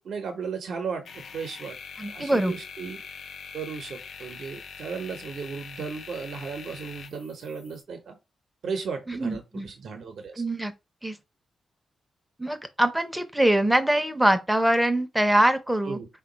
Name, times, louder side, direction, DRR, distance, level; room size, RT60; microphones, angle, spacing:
voice 1, 0.0-1.8 2.1-3.0 3.5-8.2 8.6-10.4 15.8-16.1, right 5 dB, 65° right, 0.6 m, -35 dB
sound 1, 1.1-7.8, left 6 dB, 75° left, 0.4 m, -43 dB
voice 2, 2.0-2.5 9.1-9.7 10.4-10.7 11.0-11.2 12.4-16.0, right 1 dB, 5° right, 0.5 m, -23 dB
3.8 x 2.2 x 3.8 m
wide cardioid pair, 145°, 0 cm